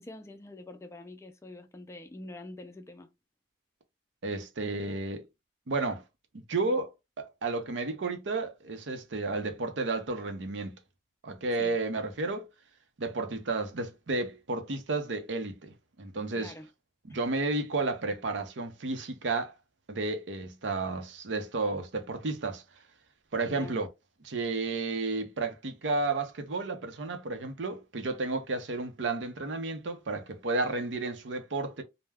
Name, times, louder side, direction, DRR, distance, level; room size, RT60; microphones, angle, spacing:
voice 1, 0.0-3.1 11.6-11.8 16.3-16.7 23.4-23.8, left 2 dB, 15° left, 0.3 m, -45 dB
voice 2, 4.2-5.2 5.7-6.0 6.3-6.9 7.2-10.8 11.2-12.4 13.0-15.7 16.0-16.5 17.1-19.5 19.9-22.6 23.3-23.9 24.2-31.8, right 3 dB, 90° right, 0.6 m, -32 dB
2.2 x 2.1 x 3.3 m
head